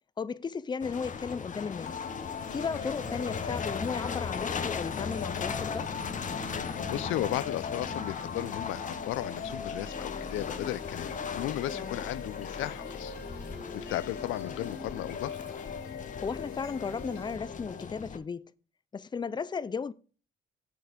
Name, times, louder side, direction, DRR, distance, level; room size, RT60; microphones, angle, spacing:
voice 1, 0.2-2.0 2.5-5.9 11.7-12.0 16.2-18.4 18.9-19.9, left 5 dB, 20° left, 0.5 m, -35 dB
sound 1, 0.8-18.2, left 6 dB, 40° left, 0.9 m, -38 dB
sound 2, 1.9-17.8, left 5 dB, 55° left, 2.5 m, -41 dB
voice 2, 6.9-13.1 13.7-15.4, left 15 dB, 85° left, 0.5 m, -35 dB
8.1 x 6.5 x 5.1 m
cardioid pair, 90°, 20 cm